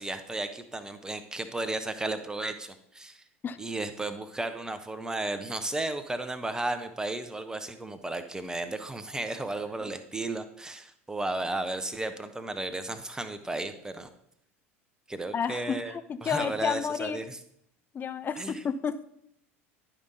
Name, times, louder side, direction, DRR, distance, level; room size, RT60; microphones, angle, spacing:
voice 1, 0.0-3.2 3.6-14.1 15.1-15.9 16.2-17.4 18.4-18.6, right 2 dB, 10° right, 9 dB, 0.8 m, -34 dB
voice 2, 15.3-17.3 17.9-19.0, left 7 dB, 25° left, 11 dB, 0.5 m, -31 dB
11.0 x 5.2 x 3.9 m, 0.73 s
figure-of-eight pair, 75°, 7 cm